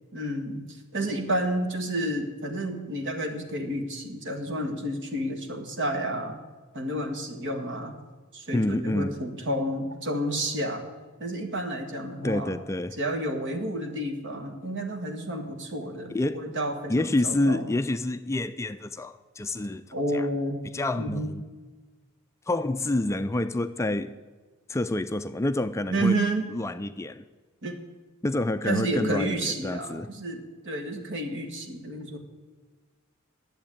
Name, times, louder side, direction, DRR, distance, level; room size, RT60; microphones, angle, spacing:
voice 1, 0.1-6.4 6.7-8.0 8.3-10.8 11.2-12.5 13.0-17.7 19.9-20.6 21.0-21.3 25.9-26.5 27.6-27.7 28.6-32.2, right 1 dB, 60° right, 1.7 m, -30 dB
voice 2, 8.5-9.1 12.2-12.9 16.1-16.4 16.9-19.8 20.1-20.3 20.7-21.4 22.5-24.1 24.7-26.2 26.5-27.2 28.2-30.1, left 2 dB, 15° left, 0.3 m, -28 dB
11.5 x 8.0 x 8.7 m
head